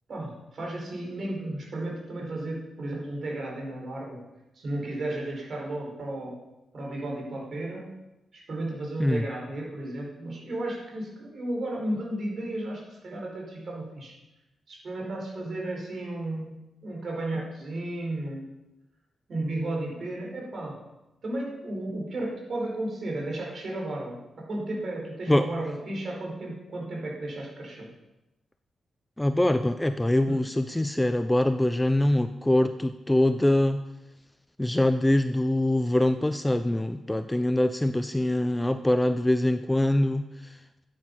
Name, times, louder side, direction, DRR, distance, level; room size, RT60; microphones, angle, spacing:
voice 1, 0.1-4.2 4.5-6.3 6.7-7.9 8.3-14.1 14.7-18.5 19.3-20.8 21.2-27.9 30.2-30.4, right 1 dB, 45° right, -2 dB, 5.0 m, -34 dB
voice 2, 29.2-33.8 34.6-40.6, left 1 dB, 10° left, 10 dB, 0.5 m, -24 dB
14.0 x 9.6 x 5.6 m, 0.98 s
wide cardioid pair, 135°, 0 cm